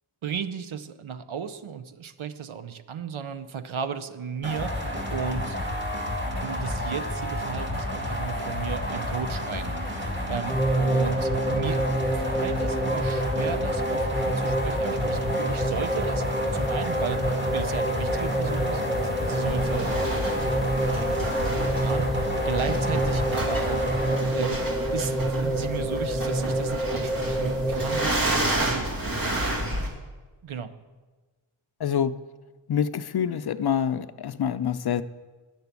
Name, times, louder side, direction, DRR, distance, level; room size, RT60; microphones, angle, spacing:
voice 1, 0.2-5.6 6.4-19.9 20.9-28.9 30.4-30.7, right 7 dB, 70° right, 11 dB, 0.8 m, -35 dB
sound 1, 4.4-24.2, left 1 dB, 25° right, 2.1 m, -30 dB
sound 2, 10.5-28.1, right 1 dB, ahead, 1.0 m, -27 dB
sound 3, 19.5-29.9, right 1 dB, 45° right, 2.3 m, -31 dB
voice 2, 31.8-32.1 32.7-35.0, left 8 dB, 50° left, 13 dB, 0.5 m, -26 dB
10.0 x 6.9 x 8.2 m, 1.3 s
wide cardioid pair, 70°, 49 cm